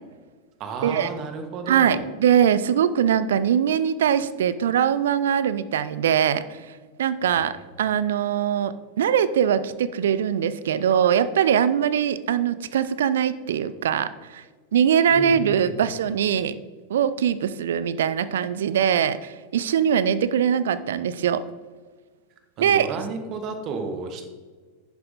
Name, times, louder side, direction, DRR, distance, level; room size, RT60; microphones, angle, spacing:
voice 1, 0.6-2.0 7.2-7.5 15.1-15.9 22.6-24.3, right 4 dB, 35° right, 7 dB, 1.4 m, -33 dB
voice 2, 1.7-6.6 7.0-14.4 14.7-16.5 16.9-21.4 22.6-22.9, right 8 dB, 60° right, 14 dB, 0.4 m, -22 dB
11.0 x 6.9 x 4.1 m, 1.4 s
figure-of-eight pair, 90°, 0 cm